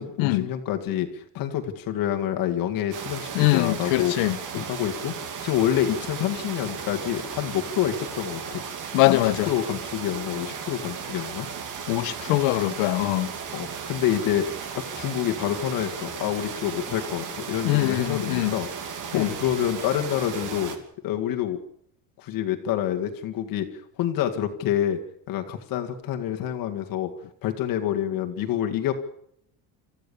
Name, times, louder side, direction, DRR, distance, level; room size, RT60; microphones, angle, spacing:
voice 1, 0.0-4.1 4.5-5.1 5.4-8.6 9.0-11.5 13.5-14.5 14.8-18.7 19.1-20.8 21.0-21.6 22.2-23.7 24.0-25.0 25.3-27.1 27.4-28.9, left 11 dB, 45° left, 2.0 m, -27 dB
sound 1, 2.9-20.8, right 6 dB, 40° right, 2.8 m, -35 dB
voice 2, 3.3-4.4 8.9-9.5 11.9-13.3 17.6-18.6 19.1-19.3, left 18 dB, 80° left, 1.6 m, -22 dB
27.5 x 14.5 x 7.0 m
cardioid pair, 175°, 47 cm